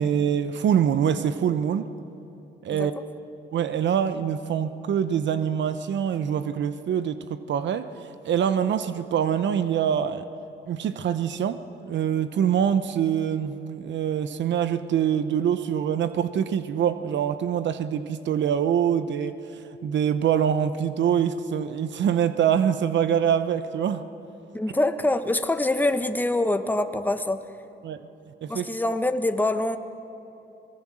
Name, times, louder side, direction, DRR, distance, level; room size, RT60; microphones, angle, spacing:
voice 1, 0.0-1.9 2.6-2.9 3.5-7.9 8.2-10.2 10.7-19.3 19.8-24.0 27.8-28.0 28.4-28.7, right 8 dB, 65° right, 12 dB, 0.9 m, -24 dB
voice 2, 24.5-27.4 28.5-29.8, left 2 dB, 10° left, 9 dB, 1.3 m, -25 dB
25.5 x 19.5 x 7.6 m, 3.0 s
cardioid pair, 90°, 20 cm